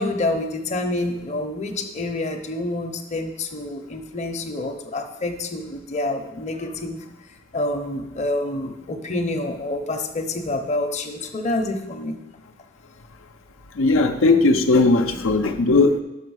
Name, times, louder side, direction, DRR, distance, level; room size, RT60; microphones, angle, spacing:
voice 1, 0.0-7.0 7.5-12.2, left 2 dB, 35° left, 4 dB, 0.7 m, -27 dB
voice 2, 13.7-16.0, left 3 dB, 85° left, 5 dB, 0.6 m, -17 dB
5.8 x 5.7 x 6.3 m, 0.95 s
head